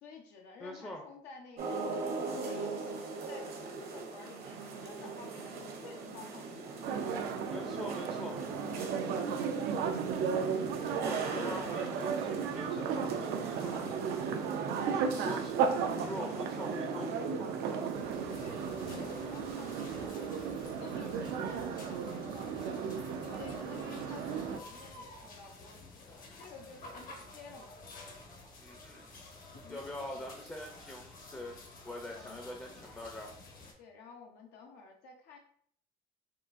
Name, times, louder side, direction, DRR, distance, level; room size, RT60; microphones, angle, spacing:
voice 1, 0.0-7.0 9.0-9.2 10.8-11.6 14.7-15.5 18.4-20.3 20.8-22.9 23.2-27.9 29.6-30.3 32.0-32.5 33.8-35.4, left 5 dB, 80° left, 1 dB, 0.6 m, -52 dB
voice 2, 0.6-1.0 7.5-8.4 11.0-14.0 14.9-15.5 16.0-17.9 28.6-29.1 29.7-31.6 31.8-33.3, left 1 dB, 10° left, 1 dB, 0.5 m, -43 dB
sound 1, 1.6-20.1, right 3 dB, 60° right, 0.8 m, -42 dB
sound 2, 6.8-24.6, right 6 dB, 80° right, 0.4 m, -35 dB
sound 3, 17.9-33.7, left 2 dB, 55° left, 0.9 m, -51 dB
3.7 x 2.4 x 2.5 m, 0.62 s
cardioid pair, 110°, 17 cm